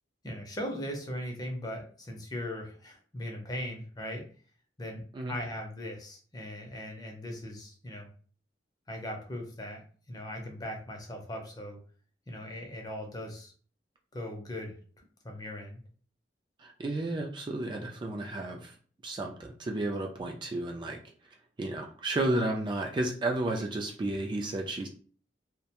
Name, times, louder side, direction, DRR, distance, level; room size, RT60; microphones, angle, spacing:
voice 1, 0.2-4.3 4.8-8.1 8.9-11.8 12.3-13.5 14.1-14.7 15.2-15.8, left 1 dB, 25° left, 2 dB, 0.6 m, -39 dB
voice 2, 16.6-18.7 19.0-21.0 21.6-24.9, right 2 dB, 25° right, 2 dB, 0.3 m, -32 dB
2.3 x 2.1 x 2.8 m, 0.43 s
head